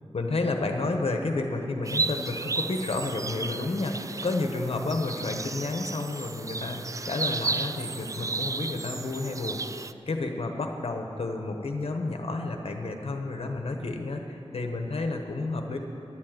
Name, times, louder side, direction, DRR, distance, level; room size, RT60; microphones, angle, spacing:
voice 1, 0.1-6.8 7.0-15.8, left 2 dB, 65° left, 4 dB, 1.2 m, -31 dB
sound 1, 1.8-9.9, right 3 dB, 30° right, 0.3 m, -33 dB
11.5 x 7.5 x 9.1 m, 3.0 s
wide cardioid pair, 95°, 11 cm